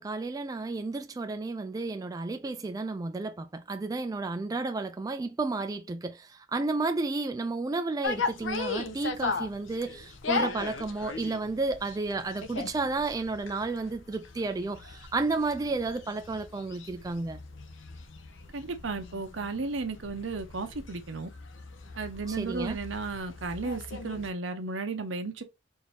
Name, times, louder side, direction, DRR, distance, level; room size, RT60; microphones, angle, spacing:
voice 1, 0.0-17.4 22.3-22.8, right 3 dB, 20° right, 0.3 m, -32 dB
sound 1, 8.0-24.3, left 4 dB, 80° left, 0.7 m, -38 dB
voice 2, 18.5-21.3 22.0-25.4, right 3 dB, 75° right, 0.9 m, -34 dB
4.6 x 2.7 x 3.3 m
head